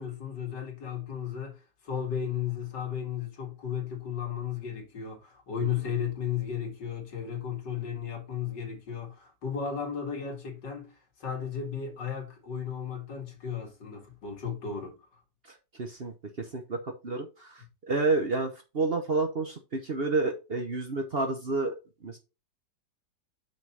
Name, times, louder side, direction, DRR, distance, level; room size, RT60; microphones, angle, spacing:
voice 1, 0.0-15.0, left 8 dB, 80° left, 2.6 m, -34 dB
voice 2, 15.8-21.7 22.0-22.2, right 3 dB, 40° right, 1.0 m, -30 dB
6.0 x 5.6 x 4.2 m
omnidirectional pair, 1.9 m